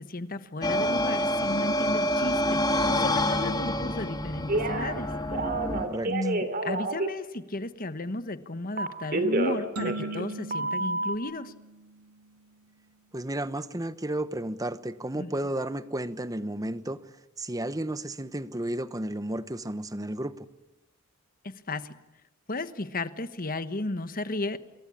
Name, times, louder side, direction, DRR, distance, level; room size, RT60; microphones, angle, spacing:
voice 1, 0.0-5.1 6.1-11.5 15.1-15.3 21.4-21.9 22.5-24.6, left 2 dB, 40° left, 12 dB, 1.3 m, -34 dB
sound 1, 0.6-5.9, left 1 dB, 20° left, 2.3 m, -27 dB
Telephone, 4.5-5.0 5.3-7.1 8.8-10.3 10.5-11.2, right 2 dB, 40° right, 2.8 m, -29 dB
voice 2, 5.9-6.3 13.1-17.0 17.4-20.5, right 1 dB, 15° right, 14 dB, 1.0 m, -33 dB
sound 2, 9.8-12.4, right 2 dB, 90° right, 1.7 m, -40 dB
27.5 x 23.0 x 8.8 m, 1.0 s
head